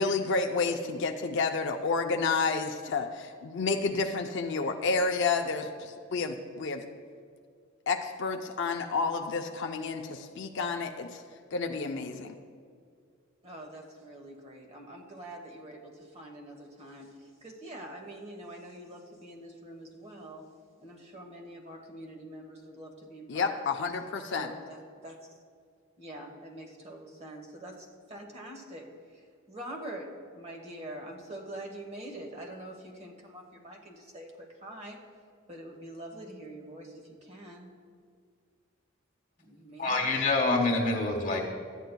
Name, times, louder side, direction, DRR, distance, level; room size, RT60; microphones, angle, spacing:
voice 1, 0.0-6.8 7.9-11.2 11.5-12.4 23.3-24.5, left 4 dB, 60° left, 4 dB, 0.5 m, -30 dB
voice 2, 13.4-20.5 20.8-23.6 24.3-25.2 26.0-28.9 29.5-35.0 35.5-37.7 39.4-40.2, right 1 dB, 30° right, 1 dB, 1.1 m, -45 dB
voice 3, 39.8-41.4, left 3 dB, 40° left, 0 dB, 1.3 m, -26 dB
13.5 x 9.3 x 2.2 m, 2.1 s
head